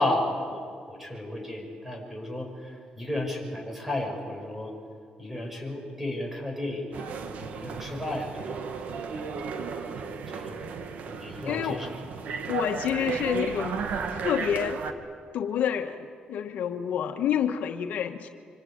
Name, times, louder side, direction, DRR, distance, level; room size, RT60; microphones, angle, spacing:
voice 1, 0.0-4.7 5.2-8.4 8.7-9.4 10.3-10.7 11.1-11.9 13.1-13.2, left 1 dB, 10° right, 2 dB, 6.2 m, -33 dB
sound 1, 6.9-14.9, right 6 dB, 70° right, 1.7 m, -34 dB
voice 2, 11.4-11.8 12.5-13.8 14.1-14.8 15.3-18.3, left 8 dB, 80° left, 5 dB, 1.4 m, -28 dB
25.5 x 25.0 x 8.8 m, 2.2 s
cardioid pair, 125°, 3 cm